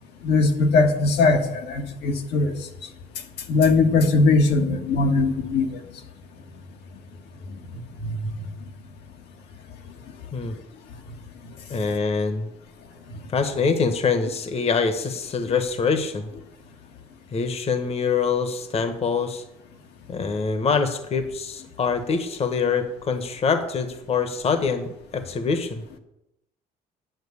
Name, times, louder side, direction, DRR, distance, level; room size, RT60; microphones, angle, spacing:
voice 1, 0.2-2.5 3.5-5.7 8.0-8.2, left 3 dB, 80° left, 3 dB, 1.5 m, -20 dB
voice 2, 11.7-12.5 13.3-16.3 17.3-19.4 20.1-25.8, left 5 dB, 35° left, 9 dB, 1.1 m, -24 dB
9.1 x 6.0 x 8.4 m, 0.87 s
cardioid pair, 110°, 17 cm